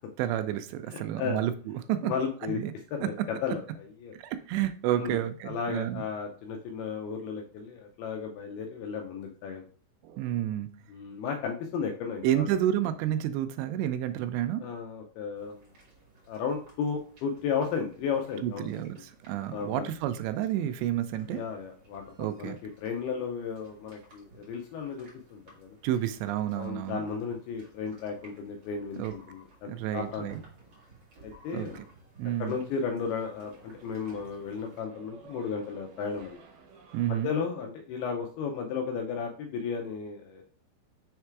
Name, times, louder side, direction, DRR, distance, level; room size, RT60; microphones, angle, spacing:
voice 1, 0.2-2.1 2.4-2.7 3.0-3.1 4.1-6.0 10.0-10.7 12.2-14.6 18.4-21.4 22.2-22.6 25.8-27.0 29.0-29.1 29.7-30.4 31.5-31.8 32.2-32.6 36.9-37.3, right 12 dB, 85° right, 10 dB, 2.7 m, -30 dB
voice 2, 0.9-1.4 2.0-2.6 2.9-4.1 5.0-5.2 5.5-9.6 10.9-12.4 14.6-15.6 16.3-18.8 19.5-19.9 21.3-22.5 22.8-25.8 26.5-30.3 31.2-31.8 32.4-36.4 37.1-40.4, left 6 dB, 80° left, 2 dB, 2.4 m, -34 dB
sound 1, 15.3-34.8, right 3 dB, 40° right, 2.4 m, -57 dB
sound 2, 32.3-37.3, right 5 dB, 70° right, 2.9 m, -55 dB
6.5 x 3.5 x 4.6 m, 0.42 s
omnidirectional pair, 5.1 m